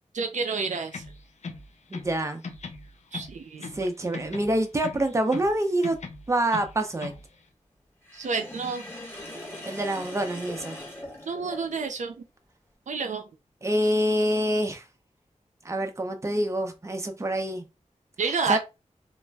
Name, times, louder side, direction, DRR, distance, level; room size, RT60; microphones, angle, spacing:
voice 1, 0.1-1.0 3.1-3.7 8.1-8.9 11.3-12.2 12.9-13.2 18.2-18.6, right 5 dB, 75° right, 0.4 m, -29 dB
sound 1, 0.9-2.2 2.4-3.9 4.1-5.6 5.8-7.3, left 4 dB, 65° left, 0.5 m, -39 dB
voice 2, 1.9-2.4 3.7-6.0 6.3-7.1 9.6-10.8 13.6-14.8 15.6-17.6 18.5-18.6, right 1 dB, 25° right, 0.5 m, -26 dB
Sink (filling or washing), 8.0-12.0, left 1 dB, 20° left, 1.0 m, -41 dB
2.4 x 2.1 x 3.3 m
wide cardioid pair, 95°, 13 cm